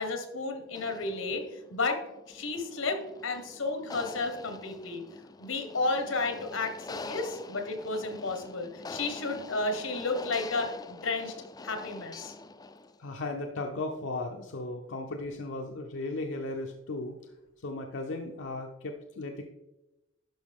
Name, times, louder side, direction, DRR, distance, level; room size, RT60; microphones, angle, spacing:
voice 1, 0.0-2.0 2.3-5.0 5.4-11.3 11.6-12.3, left 3 dB, 90° left, 5 dB, 1.4 m, -32 dB
sound 1, 0.7-13.0, left 3 dB, 20° left, 0.4 m, -45 dB
voice 2, 13.0-17.2 17.6-19.4, left 2 dB, 70° left, 2 dB, 0.7 m, -36 dB
11.5 x 5.4 x 3.6 m, 0.99 s
head